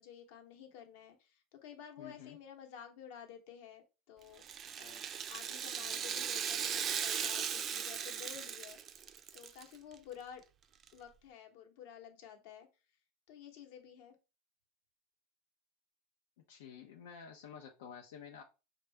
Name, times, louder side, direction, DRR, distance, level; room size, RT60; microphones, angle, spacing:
voice 1, 0.0-4.4 4.8-8.8 9.3-10.4 10.9-12.7 13.3-14.1, left 8 dB, 65° left, 5 dB, 1.0 m, -52 dB
voice 2, 2.0-2.4 16.5-18.4, left 7 dB, 90° left, 2 dB, 0.7 m, -50 dB
Rattle (instrument), 4.4-9.6 9.9-10.0 10.9-11.0, right 8 dB, 30° right, 0.4 m, -38 dB
5.4 x 2.4 x 3.4 m, 0.30 s
supercardioid pair, 145°, 0 cm